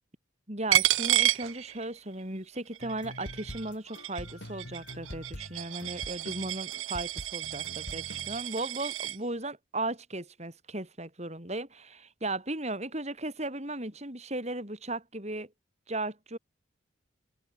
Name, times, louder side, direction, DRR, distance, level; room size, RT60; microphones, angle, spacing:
voice 1, 0.5-15.5 15.9-16.4, right 2 dB, 35° right, 4.7 m, -36 dB
Coin (dropping), 0.7-2.2 2.6-9.2, right 13 dB, 85° right, 0.6 m, -31 dB
sound 1, 2.8-8.7, left 1 dB, 65° left, 6.2 m, -44 dB
head